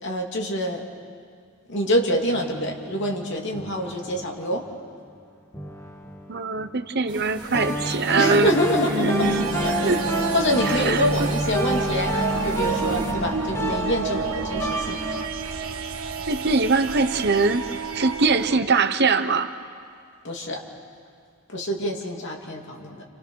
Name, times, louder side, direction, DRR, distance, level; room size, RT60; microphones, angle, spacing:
voice 1, 0.0-0.8 1.7-4.6 8.2-10.0 10.3-12.1 12.4-15.0 20.2-20.6 21.5-23.0, equal, 60° left, 0 dB, 3.0 m, -26 dB
sound 1, 2.3-4.8 5.5-7.1 7.5-15.2, right 1 dB, 15° left, 1.9 m, -29 dB
voice 2, 6.3-8.5 8.8-10.0 10.7-11.0 16.3-17.6 17.9-19.5, right 4 dB, 50° right, 9 dB, 1.1 m, -22 dB
sound 2, 7.1-13.1, right 2 dB, 20° right, 2.2 m, -38 dB
sound 3, 9.2-18.6, right 5 dB, 80° right, 1.7 m, -30 dB
29.5 x 28.0 x 6.5 m, 2.1 s
head